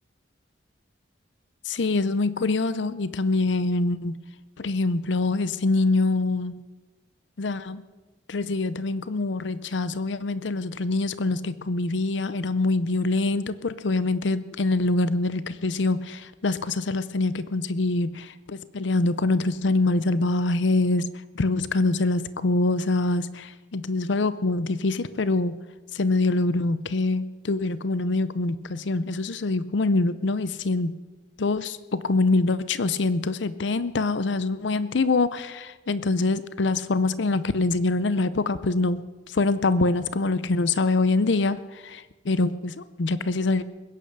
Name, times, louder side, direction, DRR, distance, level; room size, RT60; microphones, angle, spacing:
voice 1, 1.7-4.1 4.6-6.5 7.4-7.8 8.3-21.1 21.3-25.5 25.9-30.9 31.4-39.0 39.3-43.6, left 3 dB, 75° left, 15 dB, 0.6 m, -24 dB
21.0 x 10.0 x 6.6 m, 1.2 s
head